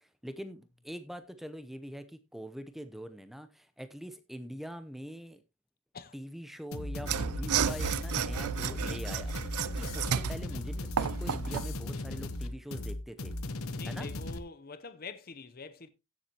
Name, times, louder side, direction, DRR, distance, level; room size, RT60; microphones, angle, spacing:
voice 1, 0.0-5.4 6.1-13.3 13.8-14.1, equal, ahead, 0.8 m, -43 dB
sound 1, 6.7-14.4, left 2 dB, 75° left, 1.0 m, -37 dB
Mechanisms / Sawing, 7.0-11.7, right 8 dB, 90° right, 0.5 m, -33 dB
voice 2, 13.7-15.9, left 4 dB, 40° left, 0.8 m, -45 dB
16.0 x 7.4 x 3.0 m
head